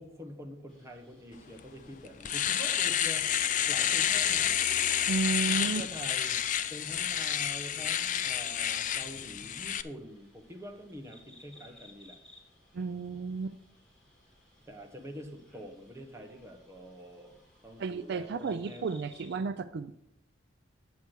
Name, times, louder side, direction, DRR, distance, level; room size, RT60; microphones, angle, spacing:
voice 1, 0.0-4.5 5.5-6.4 6.7-12.2 14.7-18.9, equal, 15° right, 2 dB, 1.2 m, -46 dB
sound 1, 0.7-19.4, left 1 dB, 5° left, 3.6 m, -60 dB
Domestic sounds home sounds, 1.6-1.7 2.1-9.8, left 10 dB, 45° left, 0.4 m, -29 dB
voice 2, 5.1-5.8 12.7-13.6 17.8-20.0, right 4 dB, 60° right, 12 dB, 0.4 m, -32 dB
9.5 x 8.0 x 4.5 m, 0.81 s
head